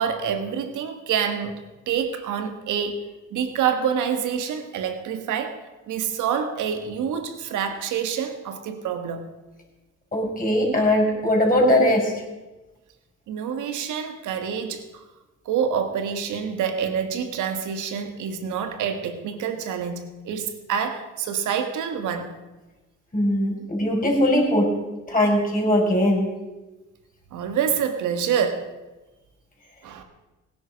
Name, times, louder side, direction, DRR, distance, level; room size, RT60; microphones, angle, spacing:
voice 1, 0.0-5.6 5.9-9.2 13.3-15.0 15.5-22.3 27.3-28.7 29.8-30.0, right 7 dB, 85° right, 8 dB, 1.7 m, -27 dB
voice 2, 10.1-12.1 23.1-24.7 25.1-26.3, left 1 dB, 25° left, -1 dB, 5.7 m, -20 dB
17.5 x 10.5 x 5.2 m, 1.1 s
cardioid pair, 75°, 30 cm